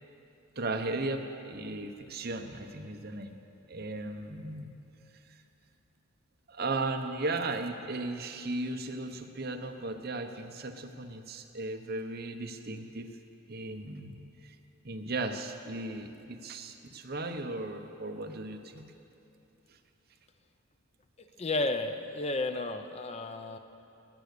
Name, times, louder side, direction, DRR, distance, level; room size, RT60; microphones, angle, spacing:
voice 1, 0.6-3.3 3.7-4.7 6.5-13.1 13.5-14.6 14.8-18.9, right 2 dB, 45° right, 5 dB, 0.9 m, -36 dB
voice 2, 21.4-23.6, left 2 dB, 30° left, 8 dB, 0.5 m, -32 dB
18.0 x 9.6 x 6.7 m, 2.8 s
head